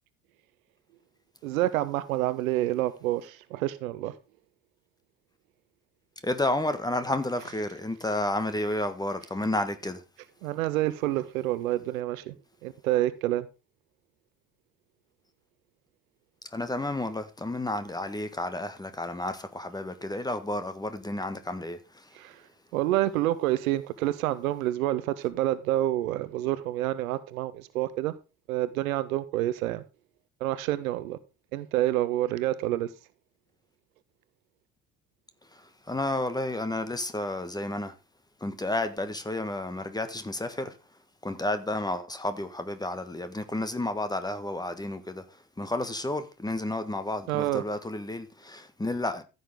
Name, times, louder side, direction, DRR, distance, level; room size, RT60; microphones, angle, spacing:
voice 1, 1.4-4.1 7.4-7.5 10.4-12.3 12.6-13.5 22.1-22.4 22.7-28.1 28.5-29.8 30.4-31.2 31.5-32.9 47.3-47.6, right 15 dB, 60° right, 1.0 m, -28 dB
voice 2, 6.2-10.0 16.5-21.8 35.9-37.9 38.4-40.7 41.2-45.2 45.6-49.2, left 1 dB, 10° left, 1.5 m, -31 dB
15.0 x 6.8 x 3.7 m
figure-of-eight pair, 65°, 46 cm